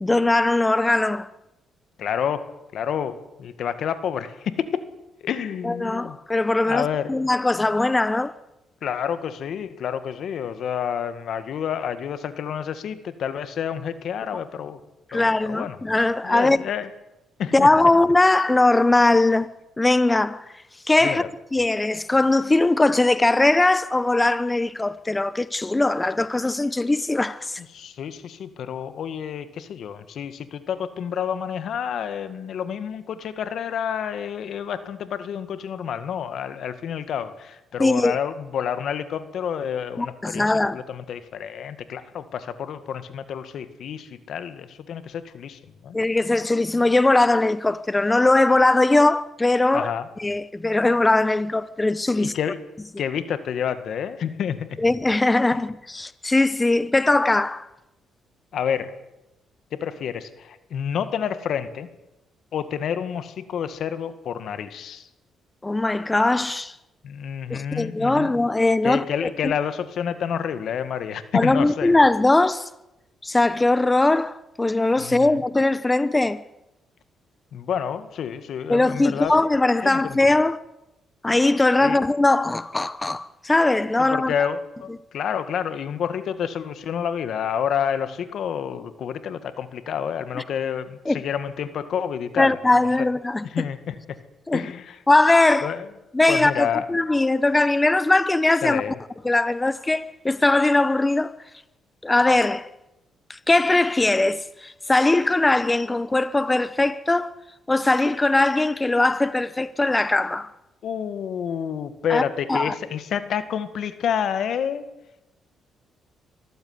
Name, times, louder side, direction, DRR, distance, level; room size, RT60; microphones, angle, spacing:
voice 1, 0.0-1.3 5.6-8.3 15.1-16.6 17.5-19.5 19.8-20.4 20.9-21.2 21.5-27.6 37.8-38.1 40.0-40.8 45.9-49.9 50.2-52.3 54.8-57.7 65.6-66.7 67.5-69.5 71.3-72.7 73.2-76.4 78.7-80.6 81.2-84.3 91.1-91.2 92.4-93.6 94.5-94.7 95.1-95.7 96.1-98.8 99.2-101.3 102.0-102.7 103.3-107.3 107.7-110.5 112.1-112.2 112.5-112.7, left 2 dB, 15° left, 0.8 m, -20 dB
voice 2, 2.0-2.5 2.7-4.8 5.2-6.2 6.6-7.1 8.8-14.8 15.1-15.8 16.2-16.9 17.4-17.7 21.0-21.3 27.7-46.0 49.7-50.1 52.1-52.6 53.0-54.7 58.5-58.9 59.7-61.9 62.5-65.1 67.0-68.3 68.8-71.9 75.0-75.4 77.5-79.3 79.8-80.2 81.8-82.0 84.0-92.6 93.0-93.1 93.5-94.0 94.5-95.0 95.6-95.9 96.3-96.9 98.6-99.0 110.8-114.8, left 8 dB, 65° left, 1.8 m, -29 dB
24.0 x 14.5 x 9.6 m
cardioid pair, 90°, 0 cm